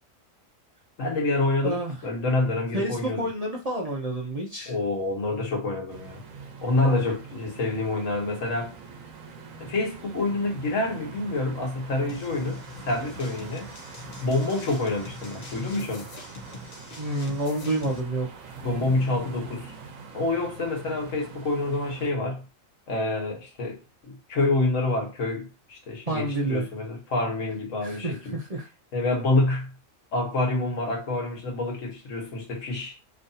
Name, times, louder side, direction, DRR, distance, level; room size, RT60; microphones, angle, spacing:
voice 1, 1.0-3.3 4.7-6.2 6.6-8.7 9.6-13.7 14.2-16.1 18.6-19.7 20.1-22.4 22.9-23.8 24.1-28.4 28.9-29.7 30.1-32.9, left 2 dB, 70° left, 1.6 m, -27 dB
voice 2, 1.6-1.9 2.7-4.7 17.0-18.3 26.1-26.6 27.8-28.7, right 1 dB, 35° right, 0.6 m, -29 dB
sound 1, 5.9-22.1, right 4 dB, 80° right, 1.1 m, -44 dB
sound 2, 12.1-18.0, left 3 dB, 45° left, 0.6 m, -44 dB
3.2 x 2.6 x 4.0 m
omnidirectional pair, 1.4 m